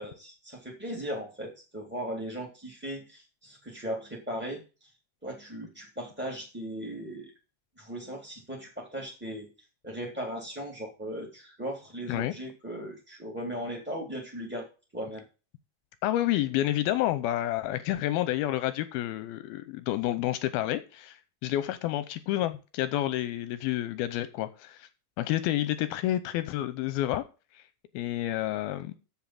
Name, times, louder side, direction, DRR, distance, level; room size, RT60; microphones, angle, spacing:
voice 1, 0.0-4.6 5.2-7.3 7.8-9.5 9.8-14.7 14.9-15.2, equal, 5° right, 1.5 m, -37 dB
voice 2, 16.0-24.9 25.2-27.2 27.9-28.9, left 14 dB, 80° left, 2.3 m, -29 dB
7.5 x 7.4 x 7.5 m
omnidirectional pair, 4.8 m